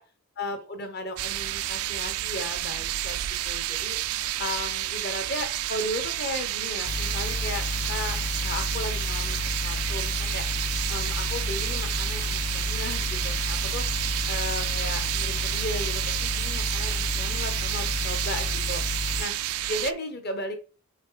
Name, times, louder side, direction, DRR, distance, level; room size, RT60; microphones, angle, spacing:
voice 1, 0.4-3.2 3.4-4.0 4.4-9.4 9.6-10.5 10.9-13.9 14.3-18.8 19.2-19.4 19.7-20.6, left 1 dB, 45° left, 7 dB, 1.1 m, -35 dB
sound 1, 1.2-19.9, right 14 dB, 80° right, 0.4 m, -30 dB
sound 2, 6.8-19.2, left 3 dB, 30° left, 0.3 m, -31 dB
6.2 x 4.0 x 4.0 m, 0.36 s
head